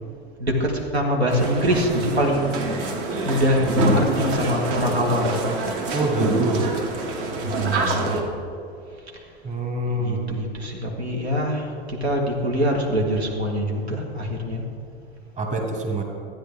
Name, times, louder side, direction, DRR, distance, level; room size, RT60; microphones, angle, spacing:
voice 1, 0.4-2.6 3.3-5.4 7.4-8.2 9.1-9.2 9.9-14.7, equal, 80° right, 1 dB, 1.5 m, -24 dB
sound 1, 1.3-8.2, right 3 dB, 55° right, 1.5 m, -26 dB
voice 2, 5.9-6.7 9.4-10.4 15.4-16.0, right 1 dB, 25° right, 2 dB, 1.6 m, -25 dB
13.5 x 9.4 x 3.7 m, 2.5 s
figure-of-eight pair, 85°, 32 cm